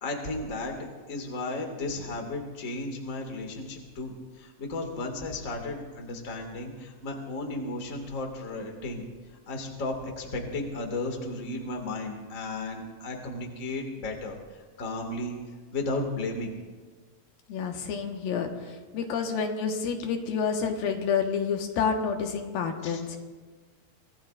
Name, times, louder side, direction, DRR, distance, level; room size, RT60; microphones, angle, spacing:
voice 1, 0.0-9.0 9.5-14.4 14.8-15.4 15.7-16.5 22.8-23.0, left 2 dB, 30° left, 2 dB, 1.7 m, -34 dB
voice 2, 17.5-23.2, left 6 dB, 90° left, 3 dB, 3.1 m, -29 dB
25.0 x 18.5 x 2.5 m, 1.4 s
omnidirectional pair, 4.1 m